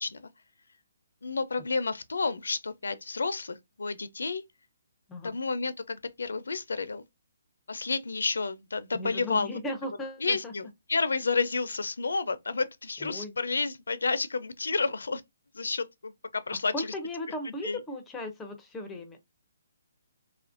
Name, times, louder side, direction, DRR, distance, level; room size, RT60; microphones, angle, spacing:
voice 1, 1.2-4.4 5.2-7.0 7.7-9.5 10.2-15.2 15.5-16.9 17.4-17.8, left 4 dB, 90° left, 0.5 m, -30 dB
voice 2, 8.9-10.5 13.0-13.3 16.5-19.2, left 1 dB, 10° left, 0.4 m, -37 dB
2.9 x 2.4 x 2.4 m
hypercardioid pair, 155°, 0 cm